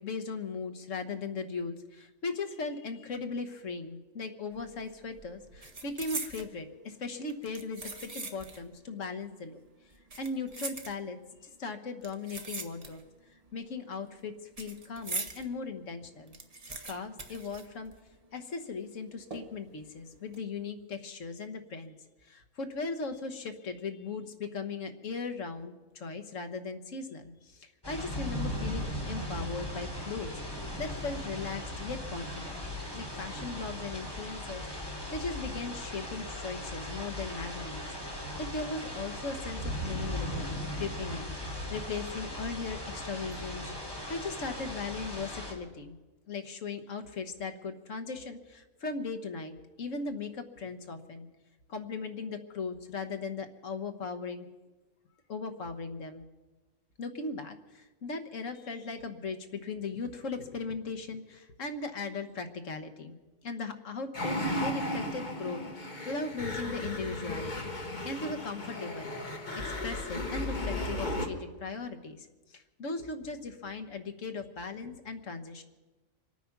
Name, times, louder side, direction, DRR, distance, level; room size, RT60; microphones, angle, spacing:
voice 1, 0.0-9.6 10.2-11.2 11.4-13.0 13.3-16.3 16.8-17.9 18.3-21.9 22.2-30.3 30.8-32.6 32.9-37.9 38.4-43.7 44.1-46.0 46.3-51.3 51.7-54.5 55.3-56.2 57.0-63.2 63.4-75.6, left 4 dB, 70° left, 7 dB, 1.6 m, -38 dB
sound 1, 4.6-4.8 5.1-6.5 7.3-8.7 9.0-9.1 9.9-11.3 12.0-13.2 13.5-15.4 15.8-15.9 16.1-18.3 18.5-18.6 19.3-19.7 20.1-20.4, right 3 dB, 30° right, 1.2 m, -41 dB
sound 2, 27.8-45.5, left 1 dB, 15° left, 2.8 m, -38 dB
sound 3, 64.1-71.3, left 1 dB, 35° left, 1.6 m, -35 dB
25.5 x 9.2 x 5.9 m, 1.2 s
omnidirectional pair, 1.4 m